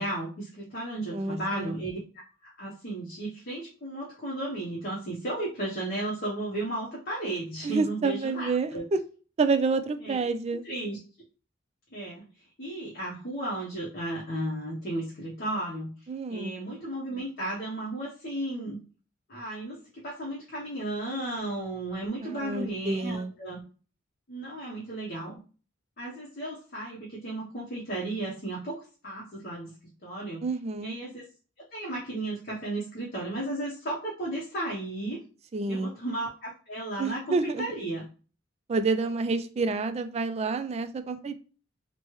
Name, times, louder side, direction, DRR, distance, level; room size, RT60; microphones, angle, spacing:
voice 1, 0.0-2.0 2.4-8.8 10.0-10.3 10.6-11.0 11.9-12.2 12.6-15.9 16.3-18.8 19.3-23.6 24.3-25.4 26.0-29.8 30.0-30.4 30.8-31.2 31.7-35.2 35.7-37.2 37.6-38.1, right 1 dB, 50° left, -5 dB, 0.9 m, -34 dB
voice 2, 1.1-1.8 7.6-9.0 9.4-10.6 16.1-16.5 22.2-23.3 30.4-31.0 35.5-35.9 37.0-37.7 38.7-41.4, right 4 dB, 35° right, 9 dB, 0.3 m, -28 dB
3.2 x 2.1 x 3.0 m, 0.37 s
head